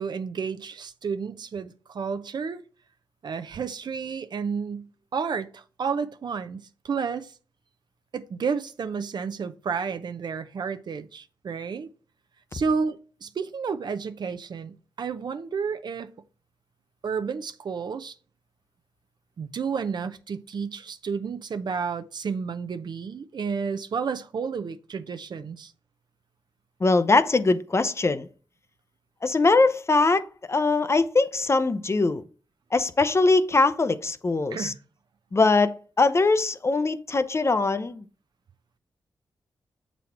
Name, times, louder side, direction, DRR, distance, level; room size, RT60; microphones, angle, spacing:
voice 1, 0.0-2.6 3.2-4.9 5.1-7.3 8.1-11.9 12.5-16.1 17.0-18.1 19.4-25.7 34.5-34.7, right 5 dB, 60° right, 0.6 m, -31 dB
voice 2, 26.8-28.3 29.2-32.2 32.7-34.7 35.3-38.0, left 3 dB, 35° left, 0.6 m, -22 dB
7.1 x 4.1 x 4.4 m
cardioid pair, 55°, 8 cm